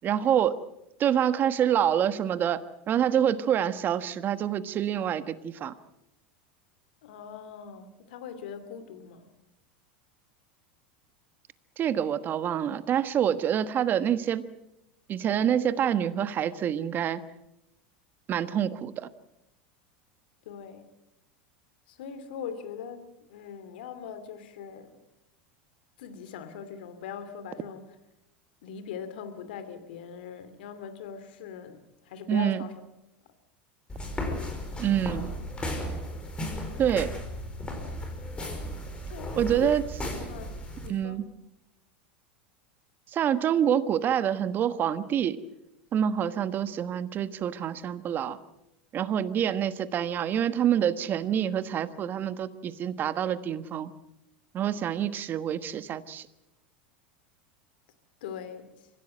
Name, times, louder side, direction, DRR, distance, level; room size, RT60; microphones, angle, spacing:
voice 1, 0.0-0.6 1.0-2.6 2.9-5.7 11.8-14.4 15.1-17.2 18.3-19.1 32.3-32.6 34.8-35.3 36.8-37.1 39.4-39.8 40.9-41.3 43.1-45.4 45.9-48.4 48.9-53.9 54.5-56.3, right 9 dB, 40° right, 13 dB, 1.3 m, -26 dB
voice 2, 7.0-9.3 20.5-20.9 21.9-24.9 26.0-27.9 28.6-32.7 39.1-39.8 40.3-40.6 40.8-41.2 58.2-58.7, left 7 dB, 75° left, 11 dB, 2.6 m, -41 dB
sound 1, 33.9-40.9, equal, 20° left, 5.2 m, -35 dB
25.0 x 16.0 x 7.8 m, 0.90 s
hypercardioid pair, 100°, 5 cm